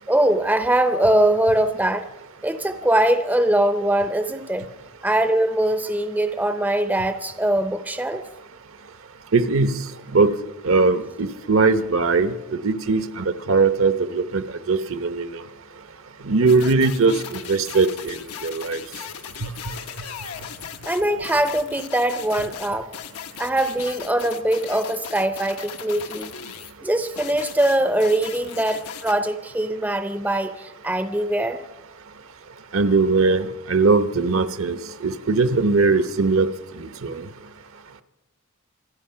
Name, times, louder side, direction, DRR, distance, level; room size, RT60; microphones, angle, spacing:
voice 1, 0.1-2.1 2.4-4.7 5.0-8.2 20.8-22.9 23.4-26.3 26.8-31.6, right 1 dB, 10° right, 10 dB, 0.6 m, -22 dB
voice 2, 9.3-9.8 10.1-10.3 10.6-15.4 16.2-18.8 19.4-19.5 32.7-36.5 36.8-37.3, right 4 dB, 65° right, 11 dB, 0.9 m, -20 dB
sound 1, 16.5-26.7 27.2-29.1, left 8 dB, 85° left, 1.1 m, -37 dB
26.5 x 9.6 x 5.7 m, 1.0 s
head